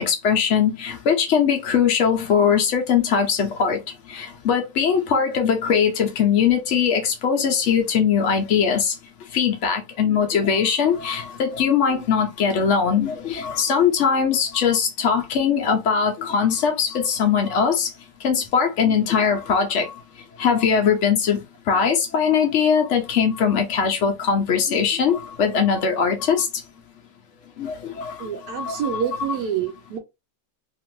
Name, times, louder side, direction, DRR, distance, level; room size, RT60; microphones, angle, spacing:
voice 1, 0.0-3.8 4.1-9.0 9.3-17.9 18.2-20.0 20.4-21.4 21.7-26.5 27.6-29.0, left 7 dB, 75° left, 0.6 m, -21 dB
voice 2, 28.2-30.0, right 8 dB, 70° right, 1.0 m, -27 dB
2.9 x 2.5 x 3.0 m
omnidirectional pair, 1.9 m